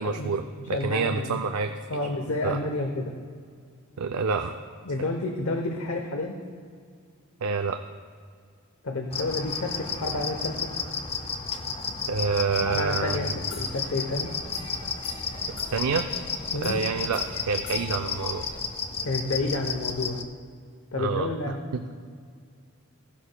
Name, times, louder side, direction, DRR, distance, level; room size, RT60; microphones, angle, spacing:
voice 1, 0.0-1.7 2.0-2.1 2.4-2.6 4.0-4.6 7.4-7.8 12.1-13.2 15.7-16.1 16.6-18.4 21.0-21.3 21.7-21.8, right 5 dB, 80° right, 7 dB, 0.4 m, -27 dB
voice 2, 0.6-1.4 1.9-3.1 4.8-6.3 8.8-10.7 12.6-14.3 16.5-16.7 19.0-20.2 20.9-21.6, left 2 dB, 65° left, 2 dB, 0.8 m, -30 dB
sound 1, 9.1-20.2, left 5 dB, 25° left, 0.5 m, -33 dB
sound 2, 13.4-18.6, left 3 dB, 85° left, 2.2 m, -43 dB
16.0 x 11.5 x 2.2 m, 2.2 s
head